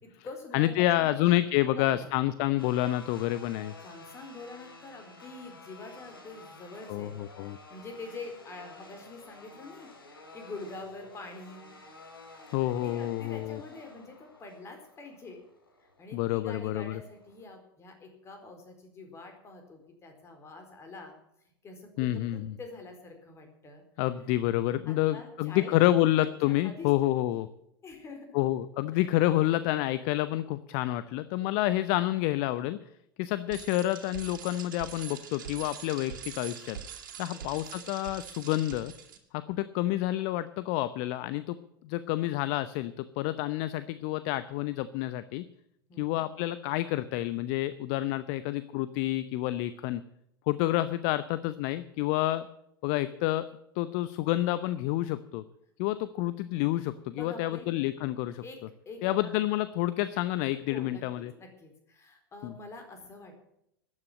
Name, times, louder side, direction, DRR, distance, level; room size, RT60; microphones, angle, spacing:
voice 1, 0.0-2.2 3.8-11.8 12.4-15.4 16.0-21.2 21.6-23.8 24.9-26.9 27.3-27.4 27.8-28.4 28.9-29.1 37.3-37.6 45.9-46.3 57.1-57.7 58.4-59.3 60.7-63.5, left 3 dB, 25° left, 5 dB, 4.3 m, -46 dB
voice 2, 0.5-3.7 6.9-7.6 12.5-13.6 16.1-17.0 22.0-22.5 24.0-27.5 28.3-32.8 33.2-36.8 37.2-38.9 39.3-41.6 41.8-45.4 46.0-50.0 50.5-52.5 52.8-53.5 53.7-55.4 55.8-58.4 59.0-61.3 62.4-62.5, left 15 dB, 45° left, 14 dB, 0.7 m, -28 dB
sound 1, 2.6-17.4, left 3 dB, 75° left, 4.7 m, -52 dB
Bicycle, 33.5-39.2, right 8 dB, 60° right, 2.8 m, -44 dB
14.0 x 9.8 x 8.7 m, 0.78 s
figure-of-eight pair, 90°, 12 cm